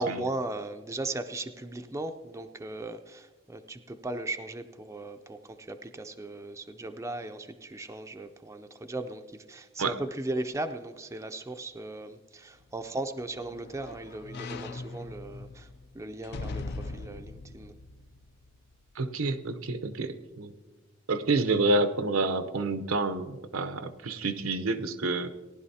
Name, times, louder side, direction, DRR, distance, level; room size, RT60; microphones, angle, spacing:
voice 1, 0.0-15.7 15.9-17.7, right 2 dB, 15° right, 7 dB, 0.4 m, -37 dB
sound 1, 12.6-18.9 19.4-19.5, left 3 dB, 55° left, 0.4 m, -41 dB
voice 2, 19.0-20.5 21.1-25.3, right 2 dB, 85° right, 10 dB, 0.7 m, -28 dB
18.5 x 11.0 x 2.8 m, 1.3 s
head